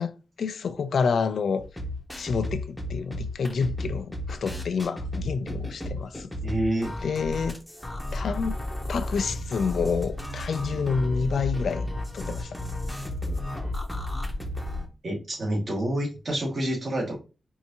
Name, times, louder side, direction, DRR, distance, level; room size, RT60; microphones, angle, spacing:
voice 1, 0.0-1.7 2.2-6.3 7.0-7.6 8.1-8.6 8.9-11.9 12.1-12.6, left 5 dB, 80° left, 0.3 m, -28 dB
sound 1, 1.6-14.9, left 1 dB, 10° left, 0.8 m, -33 dB
voice 2, 6.4-7.1 13.2-13.3 15.0-17.2, right 1 dB, 45° right, 1.7 m, -28 dB
4.5 x 2.6 x 2.7 m
wide cardioid pair, 100°, 0 cm